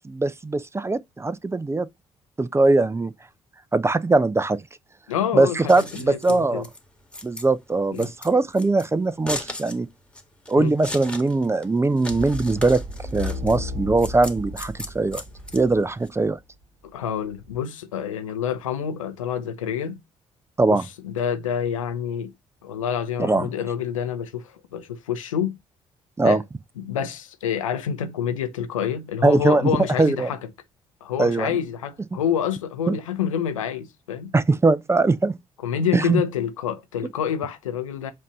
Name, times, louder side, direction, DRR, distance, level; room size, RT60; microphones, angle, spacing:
voice 1, 0.0-1.9 2.4-3.1 3.7-4.6 5.3-6.6 7.2-9.9 10.5-12.8 13.1-15.2 15.5-16.4 20.6-20.8 23.2-23.5 26.2-26.4 29.2-29.7 30.0-30.3 31.2-31.5 32.9-33.0 34.3-35.4 35.9-36.2, right 3 dB, 15° right, 0.5 m, -21 dB
voice 2, 5.1-6.7 7.9-8.1 10.6-10.7 16.8-20.0 20.7-20.8 21.0-22.3 22.6-25.6 26.2-26.4 26.8-30.4 31.0-34.3 35.6-38.1, left 8 dB, 80° left, 0.6 m, -27 dB
Scissors, 5.5-16.1, left 1 dB, 5° left, 1.6 m, -38 dB
sound 1, 12.1-16.3 16.9-17.6, left 2 dB, 40° right, 1.9 m, -34 dB
7.4 x 2.7 x 5.4 m
figure-of-eight pair, 45°, 17 cm